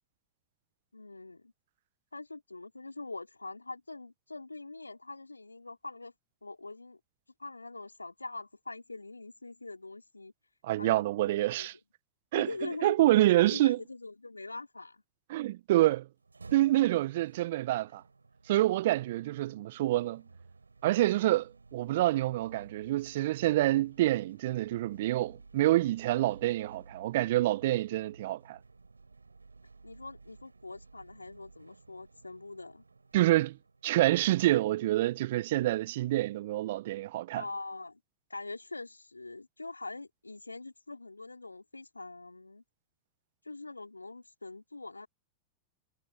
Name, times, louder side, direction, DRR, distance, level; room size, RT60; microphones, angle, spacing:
voice 1, 0.9-1.5 2.1-6.1 6.4-7.0 7.4-10.3 10.8-11.8 12.3-13.0 13.5-15.0 29.8-32.8 37.3-38.0 38.3-42.6 43.4-45.1, left 3 dB, 85° left, 4.5 m, -43 dB
voice 2, 10.6-11.7 12.3-12.5 12.8-13.8 15.3-16.1 16.5-18.0 18.5-20.2 20.8-28.6 33.1-33.6 33.8-37.4, right 15 dB, 55° right, 1.0 m, -27 dB
sound 1, 16.1-34.3, right 4 dB, 85° right, 5.1 m, -55 dB
figure-of-eight pair, 95°, 0 cm